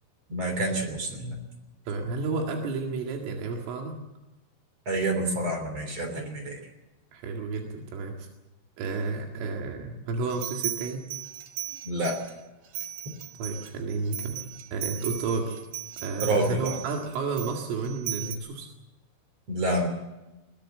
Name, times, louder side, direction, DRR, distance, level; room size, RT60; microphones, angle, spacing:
voice 1, 0.3-1.4 4.9-6.6 11.8-12.2 16.2-16.8 19.5-19.9, right 1 dB, 35° right, 5 dB, 3.9 m, -28 dB
voice 2, 1.9-4.0 7.1-8.3 8.8-11.1 13.4-15.6 16.0-18.7, right 4 dB, 85° right, 2 dB, 4.7 m, -31 dB
sound 1, 10.3-12.3 12.7-18.4, right 10 dB, 60° right, 2.3 m, -37 dB
21.5 x 18.5 x 7.4 m, 1.0 s
omnidirectional pair, 5.6 m